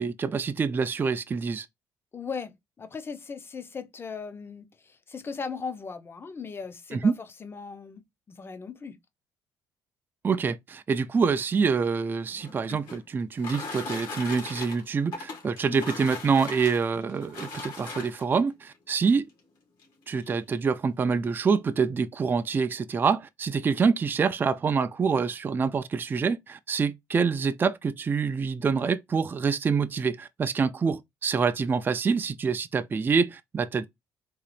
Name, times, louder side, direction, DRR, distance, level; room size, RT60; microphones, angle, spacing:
voice 1, 0.0-1.7 6.9-7.2 10.2-19.3 20.1-33.9, right 5 dB, 25° right, 0.3 m, -26 dB
voice 2, 2.1-9.0 15.7-15.9, left 5 dB, 30° left, 0.6 m, -38 dB
sound 1, 12.2-18.4 19.3-19.4 19.8-19.9 20.2-20.6, left 3 dB, 75° left, 1.8 m, -39 dB
3.8 x 2.4 x 3.3 m
cardioid pair, 85°, 8 cm